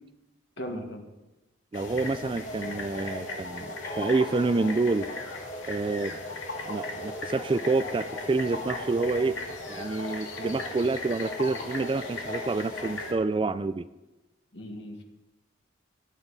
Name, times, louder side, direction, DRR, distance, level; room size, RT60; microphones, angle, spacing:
voice 1, 0.6-1.0 14.5-15.0, equal, 65° left, 3 dB, 1.9 m, -37 dB
sound 1, 1.7-13.1, left 2 dB, 85° left, 2.2 m, -36 dB
voice 2, 1.7-5.1 5.7-6.2 6.7-9.4 9.7-13.8, right 3 dB, 25° right, 14 dB, 0.3 m, -28 dB
sound 2, 3.8-11.0, right 1 dB, 45° left, 3.1 m, -47 dB
18.5 x 9.8 x 4.1 m, 1.0 s
head